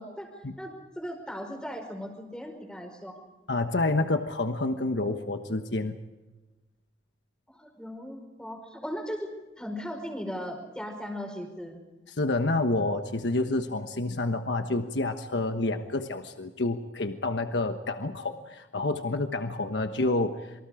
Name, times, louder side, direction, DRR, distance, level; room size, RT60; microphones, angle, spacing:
voice 1, 0.6-3.2 7.5-9.3 9.6-11.8, equal, 5° left, 4 dB, 5.1 m, -38 dB
voice 2, 3.5-6.0 12.1-20.5, left 2 dB, 80° left, 7 dB, 1.3 m, -28 dB
27.0 x 25.0 x 5.0 m, 1.1 s
head